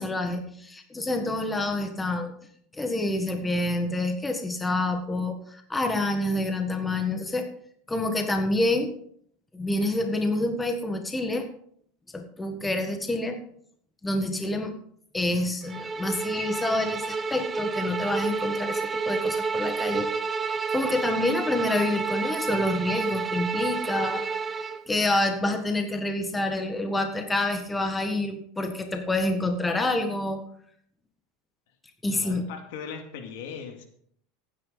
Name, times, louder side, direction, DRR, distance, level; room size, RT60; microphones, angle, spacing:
voice 1, 0.0-2.3 2.7-7.5 7.9-8.9 9.5-11.5 12.1-13.4 14.0-14.7 15.1-20.1 20.7-30.4 32.0-32.4, left 2 dB, 10° left, 5 dB, 1.5 m, -27 dB
Bowed string instrument, 15.7-24.8, right 4 dB, 20° right, 0.8 m, -30 dB
voice 2, 32.1-33.9, left 6 dB, 70° left, 5 dB, 2.3 m, -39 dB
15.0 x 9.5 x 4.0 m, 0.65 s
supercardioid pair, 125°, 0 cm